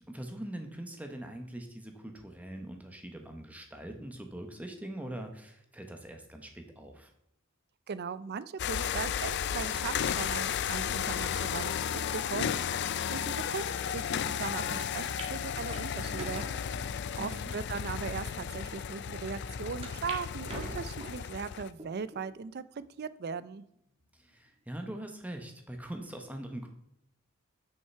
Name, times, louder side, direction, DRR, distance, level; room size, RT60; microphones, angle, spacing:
voice 1, 0.0-7.1 17.2-17.6 24.2-26.7, right 1 dB, 5° right, 4 dB, 1.0 m, -42 dB
voice 2, 7.9-11.7 12.1-12.8 13.1-16.8 17.2-23.7, right 5 dB, 50° right, 16 dB, 0.4 m, -39 dB
sound 1, 8.6-21.7, left 8 dB, 55° left, 0.4 m, -34 dB
sound 2, 14.7-14.8 15.2-15.3 15.7-16.6 17.3-17.4 18.1-18.2 18.5-18.6 19.8-20.2 20.5-21.2 21.8-22.2 22.8-22.9 24.0-24.4, right 2 dB, 30° right, 1.7 m, -43 dB
8.5 x 6.5 x 4.5 m, 0.80 s
head